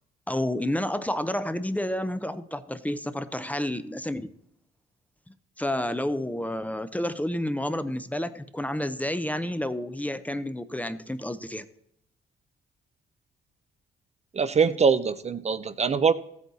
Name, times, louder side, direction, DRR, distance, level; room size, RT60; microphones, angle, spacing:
voice 1, 0.3-4.3 5.6-11.6, left 1 dB, 5° left, 12 dB, 0.6 m, -30 dB
voice 2, 14.3-16.1, right 5 dB, 35° right, 12 dB, 0.5 m, -23 dB
14.5 x 8.4 x 4.1 m, 0.72 s
cardioid pair, 90°, 20 cm